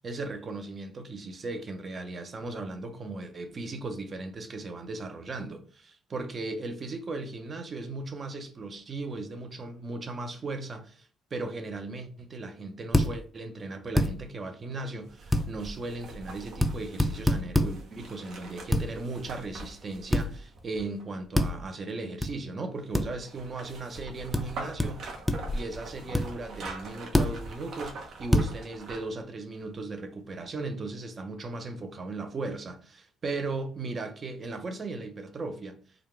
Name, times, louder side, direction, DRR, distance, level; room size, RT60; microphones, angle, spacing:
voice 1, 0.0-25.2 25.5-35.8, right 3 dB, 40° right, 0.7 m, -37 dB
sound 1, 12.9-13.1 14.0-14.1 15.3-15.5 16.6-16.7 17.0-17.7 18.7-18.9 20.1-20.3 21.3-21.5 22.2-22.3 22.9-23.1 24.3-24.4 24.8-24.9 25.3-25.6 26.1-26.2 27.1-27.3 28.3-28.5, left 1 dB, 10° left, 0.5 m, -23 dB
sound 2, 15.1-21.2 22.9-29.2 29.6-29.7, right 3 dB, 65° right, 0.9 m, -43 dB
3.8 x 2.3 x 3.3 m
cardioid pair, 85°, 0 cm